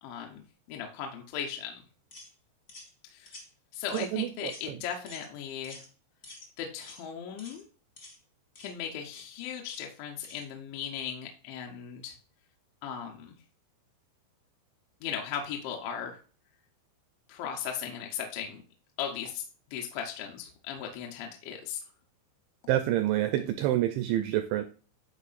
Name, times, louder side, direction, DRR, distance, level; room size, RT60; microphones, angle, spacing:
voice 1, 0.0-1.8 3.1-3.3 3.7-5.8 6.6-7.7 8.6-12.1 12.8-13.4 15.0-16.2 17.3-18.6 19.0-19.4 19.7-21.8, left 8 dB, 75° left, 3.0 m, -37 dB
sound 1, 2.1-2.3 2.7-2.9 3.3-3.5 3.9-4.2 4.5-4.7 5.1-5.3 5.6-5.9 6.2-6.5 6.8-7.0 7.4-7.6 8.0-8.2 8.5-8.7 9.1-9.3 9.7-9.9 10.2-10.4, left 2 dB, 45° left, 0.9 m, -49 dB
voice 2, 22.7-24.6, right 13 dB, 85° right, 2.5 m, -27 dB
11.5 x 4.7 x 2.5 m
omnidirectional pair, 5.7 m